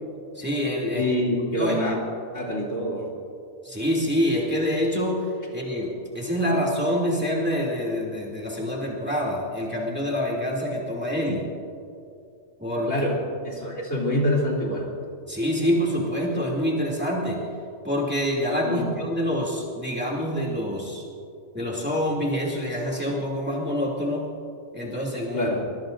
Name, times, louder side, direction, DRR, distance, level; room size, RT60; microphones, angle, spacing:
voice 1, 0.3-1.0 1.6-1.8 3.6-5.3 5.5-11.5 12.6-12.9 15.3-17.4 17.8-21.1 21.5-24.3 24.7-25.5, equal, 10° right, -3 dB, 2.8 m, -26 dB
voice 2, 0.9-2.0 2.3-3.1 12.9-13.1 13.4-14.9 18.6-18.9 25.3-25.6, left 1 dB, 65° left, -4 dB, 3.5 m, -25 dB
23.5 x 23.0 x 2.6 m, 2.5 s
omnidirectional pair, 1.4 m